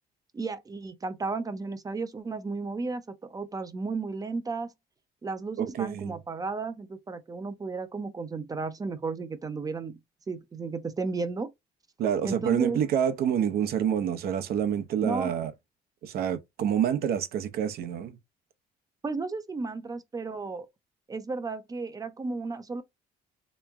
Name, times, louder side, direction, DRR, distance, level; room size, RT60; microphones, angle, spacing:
voice 1, 0.3-4.7 5.2-10.0 10.3-11.5 12.2-12.8 15.0-15.3 19.0-20.7 21.1-22.8, right 4 dB, 20° right, 0.5 m, -33 dB
voice 2, 5.6-6.2 12.0-15.5 16.0-18.2, right 9 dB, 65° right, 0.7 m, -27 dB
3.4 x 3.0 x 3.5 m
cardioid pair, 110°, 17 cm